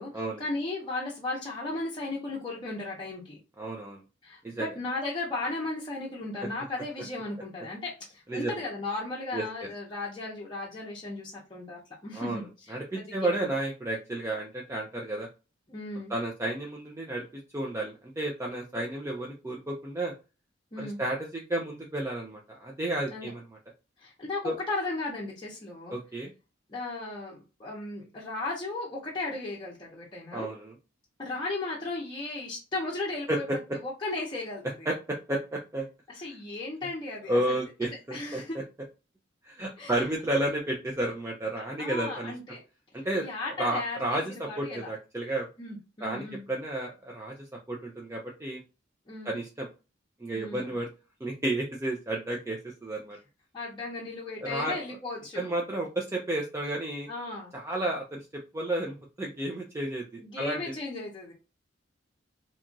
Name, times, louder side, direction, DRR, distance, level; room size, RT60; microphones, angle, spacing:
voice 1, 0.0-3.4 4.2-13.5 15.7-16.1 20.7-21.0 23.1-23.3 24.0-26.0 26.7-30.5 31.2-33.4 33.8-34.9 36.1-37.6 38.1-38.6 39.8-40.0 41.5-42.6 43.1-44.9 45.6-46.5 49.1-49.4 50.3-50.8 53.5-55.5 57.1-57.5 60.2-61.3, left 2 dB, 25° left, -6 dB, 0.7 m, -36 dB
voice 2, 3.6-4.0 4.4-4.7 8.3-8.5 9.3-9.4 12.2-12.4 12.7-15.3 16.1-17.2 17.5-20.1 20.8-23.4 24.4-24.5 25.9-26.3 30.3-30.7 33.3-33.4 34.9-35.8 37.3-38.4 39.4-42.3 42.9-43.2 43.6-45.5 46.0-47.3 47.7-48.6 49.2-49.7 50.2-50.9 51.2-53.2 54.4-54.7 55.3-57.1 57.5-58.2 58.5-60.6, right 1 dB, 15° right, -1 dB, 0.4 m, -32 dB
2.8 x 2.3 x 2.6 m, 0.30 s
head